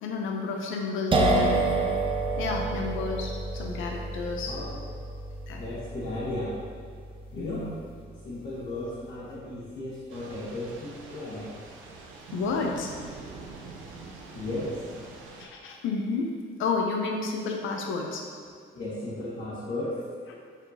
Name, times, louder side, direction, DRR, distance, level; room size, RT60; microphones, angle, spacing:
voice 1, 0.0-1.6 2.4-4.6 5.5-5.6 7.4-7.8 12.3-12.9 15.4-16.3 16.6-18.2, left 4 dB, 85° left, 1 dB, 0.6 m, -31 dB
sound 1, 1.1-8.7, right 2 dB, 25° right, 0.5 m, -29 dB
voice 2, 4.5-4.8 5.6-6.5 7.3-7.7 8.2-11.5 14.3-14.8 18.7-20.0, left 1 dB, 55° left, -10 dB, 1.2 m, -35 dB
Thunder / Rain, 10.1-15.5, right 4 dB, 85° right, 0.6 m, -45 dB
4.9 x 3.7 x 2.7 m, 2.2 s
cardioid pair, 90°, 20 cm